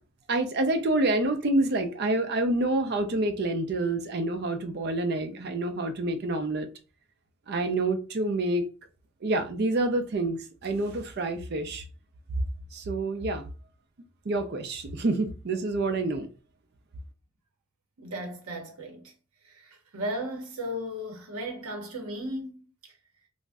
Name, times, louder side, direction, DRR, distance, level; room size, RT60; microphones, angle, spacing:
voice 1, 0.3-6.7 7.5-8.6 9.2-11.8 12.7-13.5 14.3-16.3, right 2 dB, 50° right, 0.4 m, -27 dB
voice 2, 18.0-19.1 19.4-23.0, equal, 90° right, 0.7 m, -36 dB
2.5 x 2.0 x 3.4 m
head